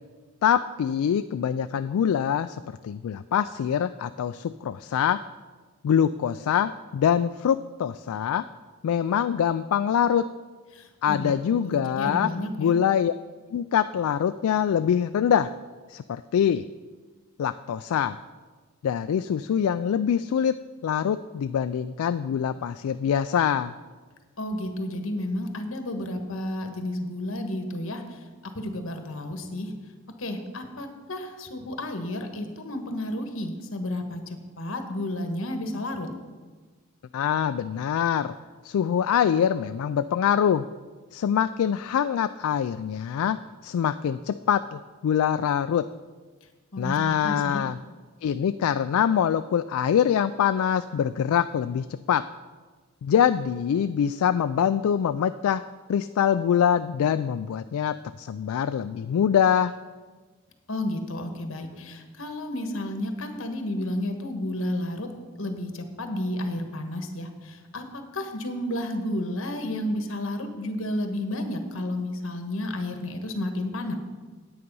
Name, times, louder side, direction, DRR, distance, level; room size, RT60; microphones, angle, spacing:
voice 1, 0.4-2.6 2.8-5.2 5.8-8.4 8.8-10.3 11.0-12.3 12.6-13.1 13.5-15.5 15.9-16.6 17.4-18.2 18.8-20.6 20.8-23.7 37.1-38.3 38.6-40.7 41.1-43.4 43.6-45.9 46.8-47.8 48.2-52.2 53.0-55.6 55.9-59.7, left 8 dB, 80° left, 11 dB, 0.3 m, -24 dB
voice 2, 10.7-12.7 24.4-28.2 28.5-29.7 30.2-34.2 34.6-36.1 46.7-47.6 60.7-65.1 65.4-74.0, left 1 dB, 65° left, 6 dB, 1.3 m, -32 dB
9.5 x 8.7 x 5.4 m, 1.4 s
head